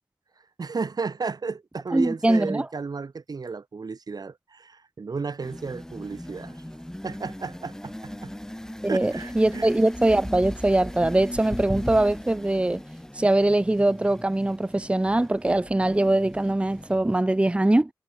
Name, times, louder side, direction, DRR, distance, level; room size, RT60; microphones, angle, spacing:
voice 1, 0.6-6.6 7.0-8.3 8.9-9.7, right 4 dB, 65° right, 5.4 m, -33 dB
voice 2, 1.9-2.7 8.8-12.8 13.1-17.9, right 1 dB, 15° right, 0.7 m, -22 dB
sound 1, 5.4-17.2, left 1 dB, 10° left, 2.0 m, -38 dB
cardioid pair, 55°, 7 cm